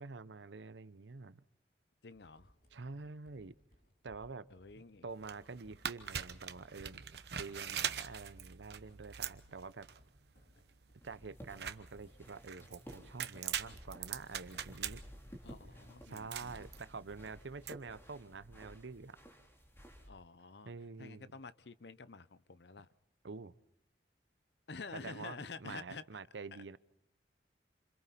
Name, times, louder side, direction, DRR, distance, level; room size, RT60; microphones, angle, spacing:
voice 1, 0.0-1.4 2.7-3.5 4.0-4.5 5.0-9.9 11.0-15.0 16.0-19.2 20.6-21.3 23.2-23.5 24.9-26.8, right 4 dB, 85° right, 16 dB, 0.7 m, -47 dB
voice 2, 2.0-2.5 4.5-5.0 15.4-16.7 20.0-20.7 21.0-22.9 24.7-26.0 26.5-26.8, left 4 dB, 70° left, 16 dB, 0.8 m, -49 dB
Writing, 2.1-18.7 19.0-19.7, equal, 55° left, 7.2 m, -68 dB
sound 1, 5.1-17.7, right 9 dB, 65° right, 1.0 m, -43 dB
sound 2, 11.0-20.1, equal, 15° left, 3.2 m, -55 dB
28.5 x 27.0 x 4.2 m, 0.76 s
head